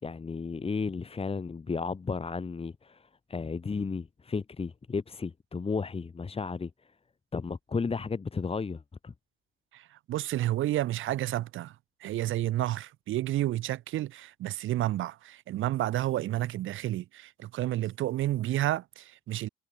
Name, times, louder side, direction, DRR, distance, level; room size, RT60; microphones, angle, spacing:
voice 1, 0.0-6.9 7.3-9.1, left 4 dB, 30° left, 4.6 m, -34 dB
voice 2, 9.7-11.7 12.0-19.5, right 14 dB, 70° right, 6.4 m, -30 dB
cardioid pair, 95°, 21 cm